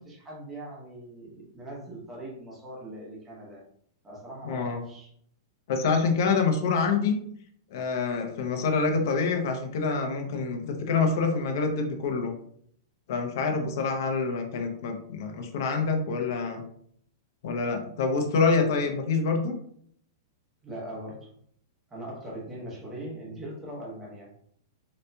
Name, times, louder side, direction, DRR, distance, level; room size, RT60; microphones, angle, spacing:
voice 1, 0.0-3.6 4.0-5.1 18.7-18.8 20.6-21.3 21.9-24.3, right 1 dB, 10° right, -5 dB, 0.9 m, -41 dB
voice 2, 4.4-4.8 5.7-7.2 7.7-12.3 13.1-16.6 17.4-19.6, left 4 dB, 60° left, 4 dB, 0.7 m, -26 dB
4.0 x 2.8 x 2.2 m, 0.64 s
supercardioid pair, 160°, 2 cm